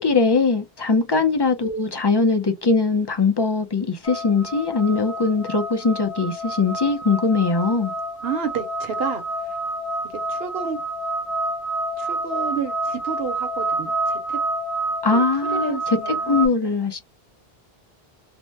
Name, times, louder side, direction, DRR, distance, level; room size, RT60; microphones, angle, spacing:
voice 1, 0.0-7.9 15.0-16.0 16.3-17.0, left 4 dB, 40° left, 0.4 m, -21 dB
sound 1, 4.0-16.5, right 2 dB, 90° left, 1.2 m, -28 dB
voice 2, 8.2-9.6 10.3-10.8 12.0-14.4 15.1-15.2 15.6-16.6, right 7 dB, 75° right, 1.0 m, -31 dB
2.8 x 2.1 x 3.2 m
omnidirectional pair, 1.0 m